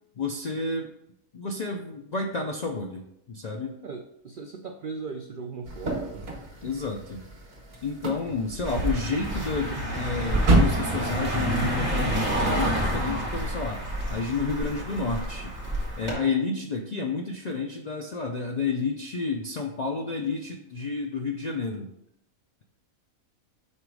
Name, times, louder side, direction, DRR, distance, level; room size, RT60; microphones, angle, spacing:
voice 1, 0.2-0.9 1.3-3.8 6.6-7.2 7.8-15.5 16.0-21.9, left 4 dB, 65° left, 1 dB, 0.4 m, -30 dB
voice 2, 3.8-6.3 12.1-12.3, right 4 dB, 80° right, 5 dB, 0.4 m, -38 dB
sound 1, 5.7-11.5, right 1 dB, 45° right, 1.4 m, -29 dB
Car passing by, 8.6-16.1, right 1 dB, 30° right, 1.9 m, -29 dB
5.5 x 3.9 x 4.7 m, 0.79 s
omnidirectional pair, 1.4 m